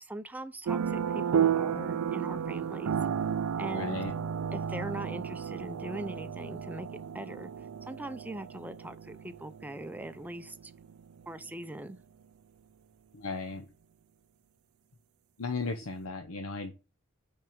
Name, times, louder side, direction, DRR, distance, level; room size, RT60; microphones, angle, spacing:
voice 1, 0.0-3.0 3.6-4.0 4.5-6.9 7.1-7.5 7.8-10.7 11.3-12.0, right 1 dB, 10° right, 0.5 m, -41 dB
sound 1, 0.7-11.4, right 8 dB, 85° right, 0.4 m, -33 dB
voice 2, 3.7-4.1 13.1-13.7 15.4-16.7, left 3 dB, 80° left, 0.8 m, -35 dB
5.9 x 4.6 x 5.1 m
head